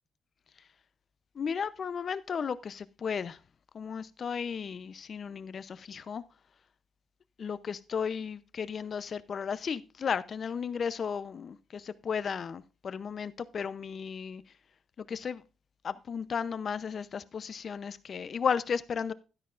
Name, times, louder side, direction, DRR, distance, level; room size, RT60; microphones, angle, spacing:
voice 1, 1.3-3.4 3.7-6.2 7.4-14.4 15.0-15.4 15.8-19.1, left 6 dB, 50° left, 0.6 m, -34 dB
12.0 x 10.0 x 2.5 m
cardioid pair, 90°, 0 cm